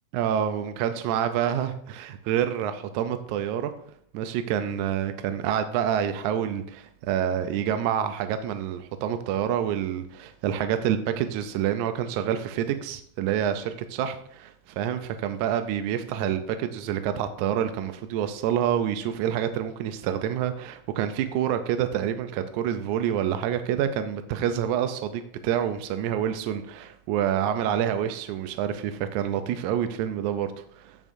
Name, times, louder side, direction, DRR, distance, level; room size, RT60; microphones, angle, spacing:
voice 1, 0.1-3.7 4.1-31.0, right 9 dB, 80° right, 9 dB, 1.8 m, -27 dB
14.5 x 7.2 x 2.6 m, 0.66 s
omnidirectional pair, 3.9 m